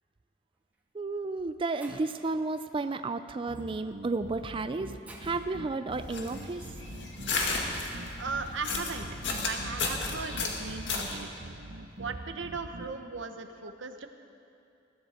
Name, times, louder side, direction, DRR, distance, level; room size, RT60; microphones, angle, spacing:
Shatter, 0.6-0.8 1.5-1.6 1.8-2.3 3.5-3.8 4.4-4.5 5.1-5.6 7.7-8.0 9.3-9.7, right 2 dB, 10° right, 1.5 m, -50 dB
voice 1, 0.9-4.9 5.2-6.6, right 3 dB, 30° right, 10 dB, 0.4 m, -32 dB
sound 1, 3.5-12.9, right 2 dB, 60° right, 0.8 m, -44 dB
sound 2, 5.9-11.2, left 3 dB, 75° left, 2.0 m, -34 dB
voice 2, 8.2-11.3 12.0-14.1, right 4 dB, 90° right, 7 dB, 1.0 m, -38 dB
21.0 x 14.0 x 4.3 m, 2.7 s
head